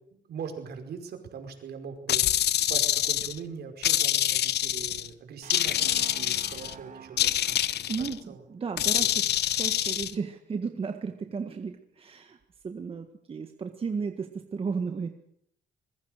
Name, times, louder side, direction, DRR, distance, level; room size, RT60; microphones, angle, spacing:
voice 1, 0.1-7.6 8.3-8.4 9.1-9.2, right 6 dB, 65° right, 6 dB, 5.2 m, -41 dB
sound 1, 2.1-3.4 3.8-5.1 5.5-6.7 7.2-8.1 8.8-10.1, left 12 dB, 70° left, 0.9 m, -26 dB
sound 2, 5.4-9.3, right 8 dB, 50° right, 1.9 m, -49 dB
voice 2, 7.9-12.4 12.6-15.1, right 5 dB, 30° right, 6 dB, 1.7 m, -34 dB
25.0 x 22.0 x 6.6 m, 0.72 s
cardioid pair, 165°, 18 cm